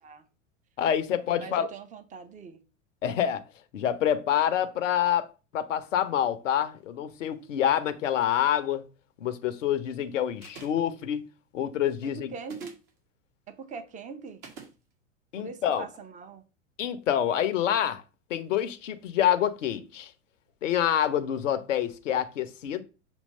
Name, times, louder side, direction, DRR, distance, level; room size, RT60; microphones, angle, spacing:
voice 1, 0.8-1.7 3.0-3.4 3.7-5.3 5.5-8.8 9.2-11.2 11.5-12.3 15.3-15.9 16.8-18.0 18.3-20.1 20.6-22.8, left 10 dB, 70° left, 0.7 m, -27 dB
voice 2, 1.3-2.6 12.1-12.8 13.5-14.4 15.4-16.4, right 5 dB, 20° right, 0.7 m, -42 dB
sound 1, 10.4-10.9 12.4-12.9 14.4-14.7, right 6 dB, 50° right, 1.8 m, -45 dB
6.2 x 2.9 x 5.4 m
figure-of-eight pair, 85°, 39 cm